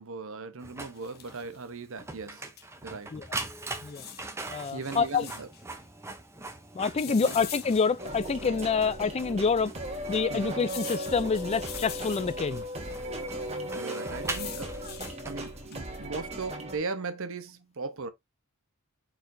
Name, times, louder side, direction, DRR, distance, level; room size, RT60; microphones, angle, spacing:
voice 1, 0.0-2.5 2.8-3.1 4.7-5.5 7.1-7.4 10.3-10.6 13.7-15.0 15.3-18.1, right 4 dB, 60° right, 0.9 m, -38 dB
Printer, 0.6-16.0, right 2 dB, 10° right, 0.7 m, -43 dB
sound 1, 0.9-1.6 2.6-2.7 2.9-3.0 3.8-5.6 7.0-8.6 9.2-9.3 10.6-12.6 13.9-15.2 15.7-16.0, left 9 dB, 45° left, 0.8 m, -44 dB
voice 2, 4.5-5.3 6.7-9.7 10.1-12.7, left 5 dB, 30° left, 0.4 m, -27 dB
sound 2, 8.0-16.8, equal, 30° right, 1.2 m, -37 dB
4.6 x 4.3 x 2.6 m
head